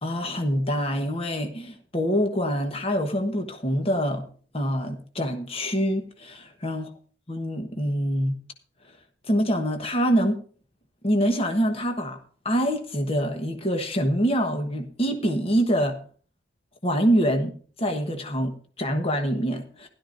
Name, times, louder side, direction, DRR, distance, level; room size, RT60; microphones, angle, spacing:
voice 1, 0.0-4.3 4.5-6.9 7.3-8.4 9.3-10.4 11.0-12.2 12.4-16.0 16.8-17.5 17.8-19.9, equal, 30° left, 1.2 m, -25 dB
16.0 x 12.0 x 2.6 m
head